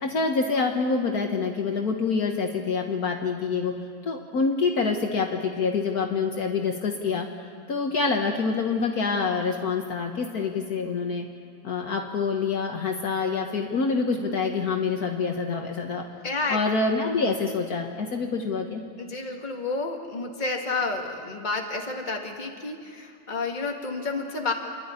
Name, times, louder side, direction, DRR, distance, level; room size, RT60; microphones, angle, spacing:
voice 1, 0.0-3.7 4.0-7.3 7.7-11.3 11.6-16.0 16.5-18.8, left 4 dB, 60° left, 2 dB, 1.7 m, -26 dB
voice 2, 16.2-16.6 19.0-24.5, left 3 dB, 25° left, 2 dB, 1.9 m, -30 dB
28.0 x 12.0 x 9.5 m, 2.3 s
omnidirectional pair, 1.8 m